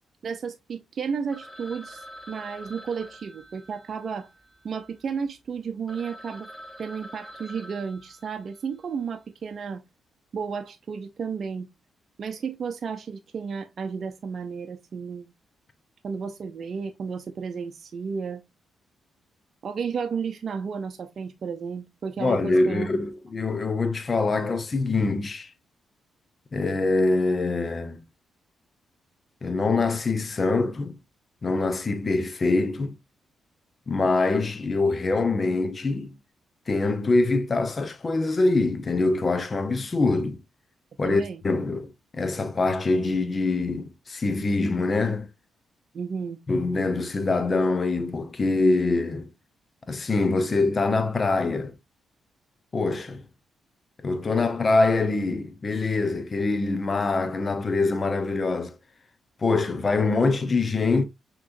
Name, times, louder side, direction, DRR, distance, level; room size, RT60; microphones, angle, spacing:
voice 1, 0.2-4.3 4.6-6.5 6.8-9.8 10.3-11.7 12.2-15.3 16.0-18.4 19.6-22.9 41.0-41.4 45.9-46.4, right 6 dB, 55° right, 0.5 m, -33 dB
Telephone, 1.3-5.1 5.6-5.7 5.9-8.8, equal, ahead, 1.3 m, -46 dB
voice 2, 22.2-25.5 26.5-28.0 29.4-31.0 31.4-32.9 33.9-36.1 36.7-40.4 41.0-45.3 46.5-49.3 49.9-51.7 52.7-53.2 54.0-58.7 59.4-61.0, left 3 dB, 40° left, 0.8 m, -24 dB
6.0 x 3.0 x 2.6 m
supercardioid pair, 50°, 0 cm